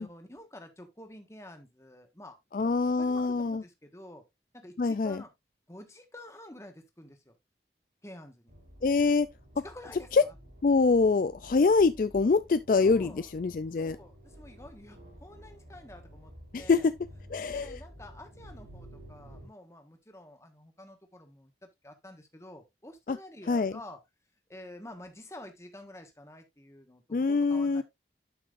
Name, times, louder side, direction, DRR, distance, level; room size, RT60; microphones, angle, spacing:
voice 1, 0.0-4.2 4.5-5.3 5.7-7.4 8.0-8.5 9.6-10.3 11.5-11.6 12.8-13.3 13.7-16.9 17.4-24.0 24.5-27.8, left 1 dB, 15° left, 1.5 m, -49 dB
voice 2, 2.5-3.6 4.8-5.2 8.8-9.3 9.6-9.7 10.1-10.2 10.6-14.0 16.5-16.9 17.3-17.8 23.1-23.2 23.5-23.7 27.1-27.8, left 4 dB, 50° left, 0.4 m, -25 dB
sound 1, 8.5-19.5, equal, 85° right, 4.1 m, -51 dB
11.5 x 5.8 x 2.6 m
head